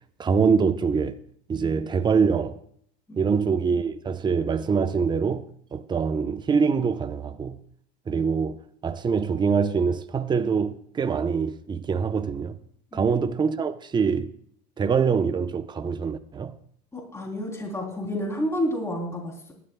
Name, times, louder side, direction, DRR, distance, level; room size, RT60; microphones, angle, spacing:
voice 1, 0.2-1.2 1.5-2.6 3.2-5.5 5.7-7.6 8.1-8.6 8.8-12.6 12.9-14.3 14.8-16.5, right 5 dB, 20° right, 0.8 m, -24 dB
voice 2, 16.9-19.5, equal, 15° left, 3.3 m, -30 dB
20.5 x 12.0 x 2.3 m
supercardioid pair, 100°, 21 cm